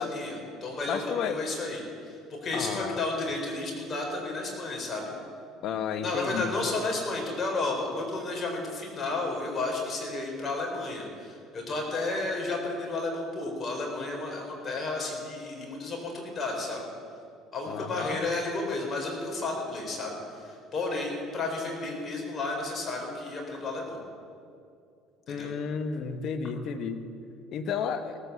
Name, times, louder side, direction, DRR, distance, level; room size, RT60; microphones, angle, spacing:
voice 1, 0.0-5.1 6.0-16.9 17.5-24.0 25.3-25.5, left 2 dB, 40° left, 0 dB, 4.2 m, -32 dB
voice 2, 0.9-1.4 2.5-3.0 5.6-6.7 17.7-18.2 25.3-27.0 27.5-28.2, left 6 dB, 60° left, 9 dB, 1.1 m, -32 dB
18.0 x 8.5 x 7.0 m, 2.3 s
supercardioid pair, 80°, 0 cm